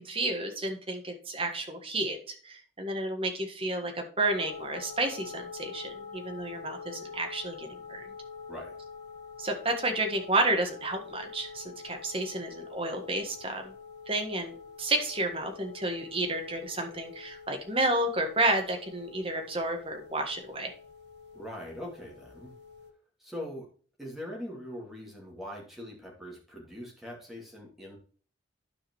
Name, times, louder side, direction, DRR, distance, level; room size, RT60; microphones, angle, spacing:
voice 1, 0.0-8.1 9.4-13.7 14.1-20.7, right 2 dB, 30° right, 3 dB, 1.6 m, -31 dB
sound 1, 4.3-22.9, left 5 dB, 65° right, 1.1 m, -46 dB
voice 2, 21.3-22.5 23.2-23.7 24.0-28.0, left 1 dB, ahead, -3 dB, 2.6 m, -42 dB
12.5 x 5.0 x 3.1 m, 0.43 s
head